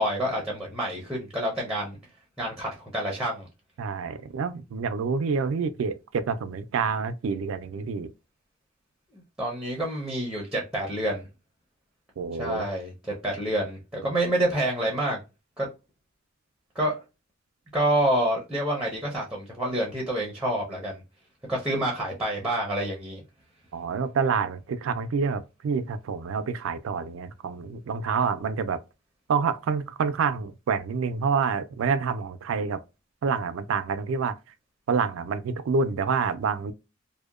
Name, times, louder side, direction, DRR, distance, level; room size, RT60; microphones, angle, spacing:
voice 1, 0.0-2.0 2.4-3.5 9.1-11.3 12.4-15.2 15.6-15.7 16.7-16.9 17.7-21.0 21.5-23.2, right 1 dB, 5° right, 0.5 m, -28 dB
voice 2, 3.8-8.1 12.2-12.7 23.7-28.8 29.3-32.8 33.2-34.4 34.9-36.7, right 5 dB, 75° right, 0.3 m, -27 dB
2.7 x 2.1 x 2.3 m
head